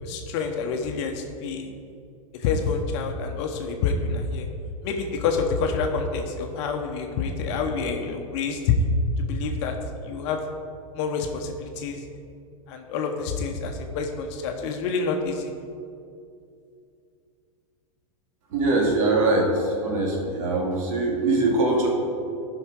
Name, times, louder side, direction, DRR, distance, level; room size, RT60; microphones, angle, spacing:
voice 1, 0.0-1.7 2.4-4.5 4.8-8.7 9.2-9.8 10.0-10.4 10.9-12.0 12.7-15.5, left 5 dB, 55° left, 4 dB, 1.0 m, -27 dB
voice 2, 18.5-21.9, right 2 dB, 65° right, -2 dB, 2.4 m, -22 dB
12.0 x 5.7 x 4.7 m, 2.5 s
hypercardioid pair, 130°, 18 cm